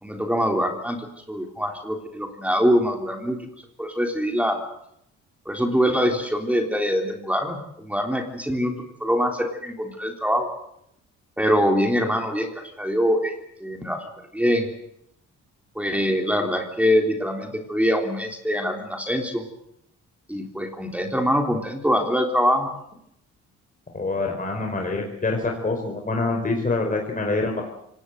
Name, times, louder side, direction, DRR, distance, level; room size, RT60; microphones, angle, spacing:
voice 1, 0.0-3.4 3.8-4.6 5.5-8.7 9.0-10.5 11.4-13.4 13.6-14.1 14.3-14.7 15.8-19.4 20.3-22.7, equal, 5° right, 3 dB, 3.6 m, -23 dB
voice 2, 23.9-27.6, left 3 dB, 25° left, 1 dB, 4.9 m, -25 dB
25.5 x 19.0 x 8.0 m, 0.78 s
cardioid pair, 90°, 30 cm